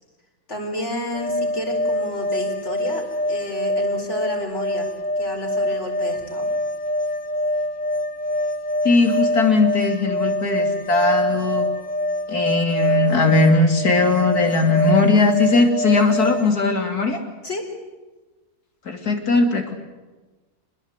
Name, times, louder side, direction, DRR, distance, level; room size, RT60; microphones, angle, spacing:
voice 1, 0.5-3.0 3.3-4.9 5.2-6.5 17.4-17.6, left 1 dB, 50° left, 2 dB, 4.6 m, -30 dB
sound 1, 1.1-16.5, left 1 dB, 35° left, 1.1 m, -25 dB
voice 2, 8.9-11.7 12.3-17.2 18.9-19.7, left 3 dB, 85° left, 4 dB, 3.5 m, -19 dB
26.0 x 20.5 x 8.2 m, 1.2 s
omnidirectional pair, 1.6 m